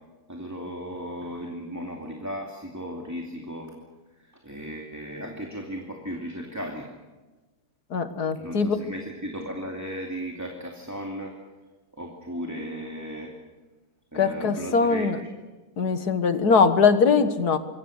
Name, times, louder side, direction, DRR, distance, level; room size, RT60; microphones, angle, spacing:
voice 1, 0.3-3.7 4.2-6.9 8.3-11.3 12.0-13.3 14.1-15.1, equal, 10° right, 0 dB, 2.5 m, -36 dB
voice 2, 7.9-8.8 14.2-15.2 15.8-17.6, left 5 dB, 75° left, 9 dB, 2.0 m, -21 dB
27.0 x 22.0 x 6.6 m, 1.2 s
omnidirectional pair, 1.7 m